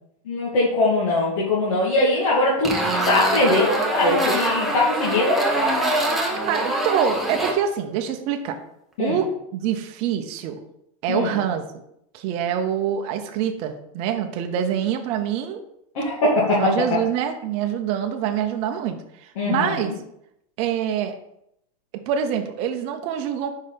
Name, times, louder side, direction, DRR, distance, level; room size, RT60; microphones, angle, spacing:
voice 1, 0.3-5.4 9.0-9.2 11.1-11.3 15.9-16.7 19.4-19.8, left 2 dB, 70° left, -7 dB, 2.1 m, -21 dB
sound 1, 2.6-7.5, right 1 dB, ahead, 0.8 m, -23 dB
voice 2, 6.5-8.6 9.0-10.6 11.0-11.6 12.1-15.6 16.6-19.9 20.6-21.1 22.1-23.5, right 8 dB, 35° right, 6 dB, 0.7 m, -25 dB
5.3 x 4.1 x 5.1 m, 0.77 s
supercardioid pair, 160°, 18 cm